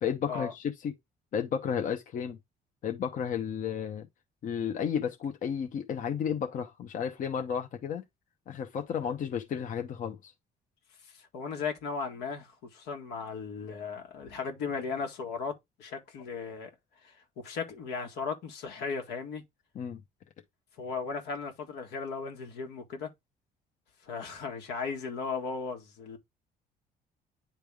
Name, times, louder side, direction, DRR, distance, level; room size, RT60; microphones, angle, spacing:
voice 1, 0.0-0.9 1.3-2.4 2.8-4.1 4.4-8.0 8.5-10.3 19.8-20.0, left 7 dB, 50° left, 0.8 m, -32 dB
voice 2, 11.0-15.5 15.8-16.7 17.0-19.4 20.8-23.1 24.0-26.2, left 5 dB, 85° left, 1.8 m, -36 dB
9.3 x 3.4 x 3.4 m
cardioid pair, 110°, 17 cm